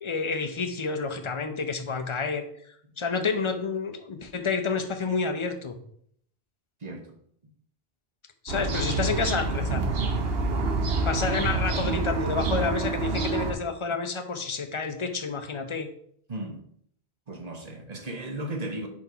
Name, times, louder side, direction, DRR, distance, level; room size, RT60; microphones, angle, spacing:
voice 1, 0.0-2.5 3.0-5.8 8.4-9.9 11.0-15.9, left 4 dB, 35° left, 7 dB, 0.6 m, -29 dB
sound 1, 8.5-13.5, right 3 dB, 70° right, 1.1 m, -27 dB
voice 2, 17.3-18.9, right 1 dB, 40° right, 4 dB, 1.0 m, -36 dB
4.7 x 4.4 x 5.5 m, 0.66 s
omnidirectional pair, 1.1 m